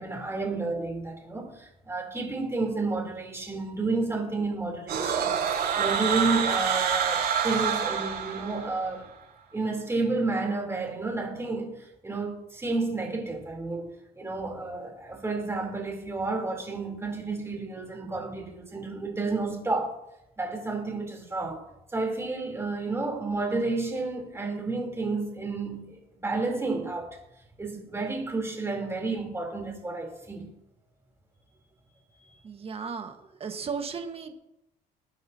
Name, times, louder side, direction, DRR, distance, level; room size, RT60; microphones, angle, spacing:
voice 1, 0.0-9.1 9.5-13.9 14.2-20.0 20.4-21.7 21.9-27.2 27.6-30.5 32.1-32.4, right 3 dB, 15° right, 3.6 m, -31 dB
sound 1, 4.9-8.9, right 7 dB, 70° right, 5.5 m, -27 dB
voice 2, 32.4-34.3, right 5 dB, 35° right, 1.6 m, -35 dB
20.5 x 9.2 x 2.9 m
cardioid pair, 110°, 17 cm